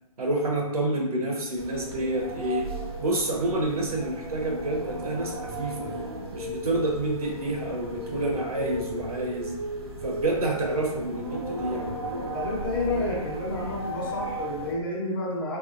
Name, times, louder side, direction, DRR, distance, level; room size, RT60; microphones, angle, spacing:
voice 1, 0.2-2.7 3.0-5.9 6.3-9.5 10.0-12.0, right 1 dB, 80° right, 0 dB, 1.1 m, -28 dB
sound 1, 1.5-14.7, right 1 dB, 45° right, 0.6 m, -35 dB
voice 2, 12.3-15.6, left 2 dB, 35° left, -4 dB, 1.0 m, -30 dB
3.4 x 3.4 x 2.5 m, 0.89 s
hypercardioid pair, 165°, 19 cm